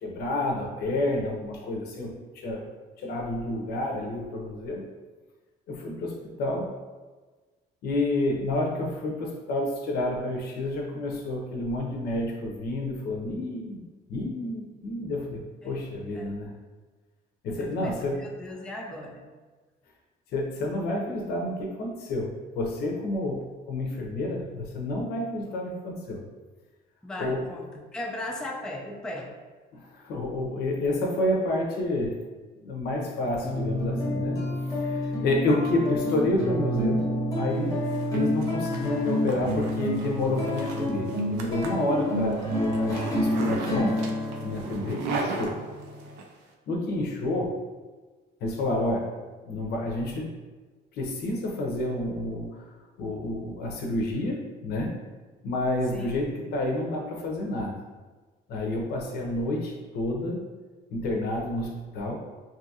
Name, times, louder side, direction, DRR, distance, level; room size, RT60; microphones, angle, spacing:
voice 1, 0.0-2.6 3.0-4.8 5.7-6.7 7.8-13.8 14.1-16.5 17.4-18.2 20.3-22.3 22.5-26.2 27.2-27.5 29.7-32.1 32.6-34.4 34.7-37.0 37.4-37.7 38.1-44.1 44.4-45.6 46.7-47.6 48.4-49.1 49.5-50.3 50.9-52.6 53.0-55.0 55.4-57.8 58.5-60.4 60.9-62.2, left 1 dB, 70° left, 0 dB, 0.6 m, -29 dB
voice 2, 17.5-19.3 27.0-29.3 55.9-56.1, left 1 dB, 5° left, 0 dB, 0.3 m, -37 dB
sound 1, 33.4-46.2, equal, 20° left, 0.7 m, -29 dB
Zipper (clothing), 37.6-46.3, right 4 dB, 90° right, 0.4 m, -38 dB
2.7 x 2.4 x 2.7 m, 1.3 s
cardioid pair, 110°, 17 cm